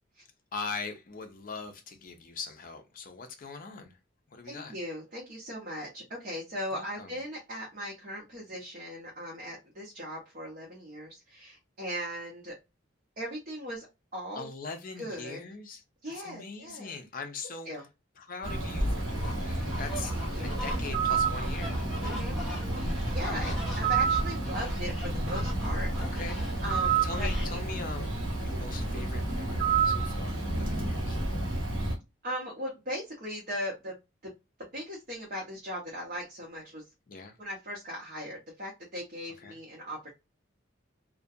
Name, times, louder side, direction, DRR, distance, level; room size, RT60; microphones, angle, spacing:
voice 1, 0.5-4.0 4.3-4.7 6.7-7.2 14.4-15.8 16.2-17.7 18.2-21.8 23.2-23.7 26.0-26.6 27.0-28.2 28.4-31.2 37.1-37.4 39.4-39.6, left 4 dB, 40° left, 0.5 m, -41 dB
voice 2, 4.4-12.5 13.2-13.9 14.1-14.5 15.0-15.4 16.0-16.9 17.7-17.8 20.0-20.6 22.0-26.2 26.6-27.6 28.7-28.9 32.2-34.0 34.2-34.3 34.6-36.8 37.4-40.2, equal, 45° right, 0.7 m, -39 dB
Bird, 18.4-32.0, right 3 dB, 80° right, 0.9 m, -30 dB
sound 1, 19.1-27.5, equal, ahead, 0.9 m, -41 dB
2.4 x 2.1 x 2.5 m
head